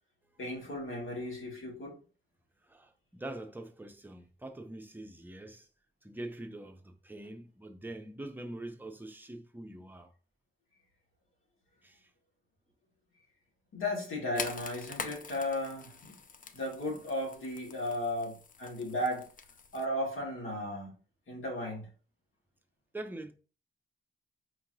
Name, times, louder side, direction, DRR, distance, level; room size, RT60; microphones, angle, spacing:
voice 1, 0.4-2.0 13.7-16.1 16.5-19.3 19.7-21.0 21.3-21.9, left 1 dB, 85° left, 2.1 m, -35 dB
voice 2, 2.7-5.7 6.0-10.1 11.8-12.1 22.9-23.3, right 1 dB, 10° right, 0.6 m, -44 dB
sound 1, 14.4-19.9, left 5 dB, 40° left, 0.5 m, -45 dB
4.6 x 2.9 x 2.6 m
cardioid pair, 85°, 20 cm